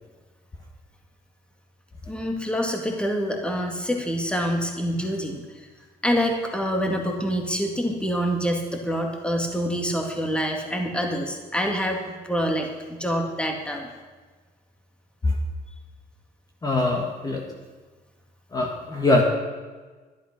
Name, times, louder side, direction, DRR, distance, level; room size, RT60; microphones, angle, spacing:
voice 1, 2.1-5.7 6.0-13.9, equal, 5° left, 2 dB, 2.0 m, -26 dB
voice 2, 16.6-17.4 18.5-19.2, left 2 dB, 20° left, 1 dB, 1.7 m, -22 dB
11.5 x 11.5 x 6.0 m, 1.3 s
cardioid pair, 110°, 17 cm